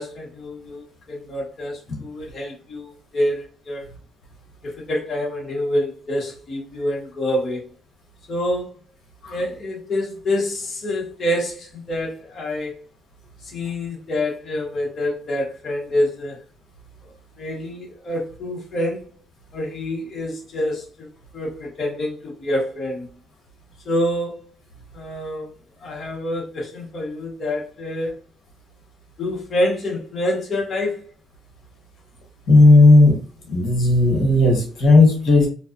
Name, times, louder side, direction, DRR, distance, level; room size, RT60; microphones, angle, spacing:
voice 1, 0.0-3.9 4.6-7.6 8.3-8.7 9.3-12.7 13.4-16.4 17.4-19.0 19.5-21.1 21.3-23.1 23.8-24.5 24.9-25.5 25.8-28.1 29.2-31.0, left 1 dB, 40° left, 0.8 m, -26 dB
voice 2, 32.5-33.2 33.5-35.5, left 2 dB, 65° left, 1.0 m, -13 dB
2.5 x 2.2 x 2.4 m
cardioid pair, 140°, 0 cm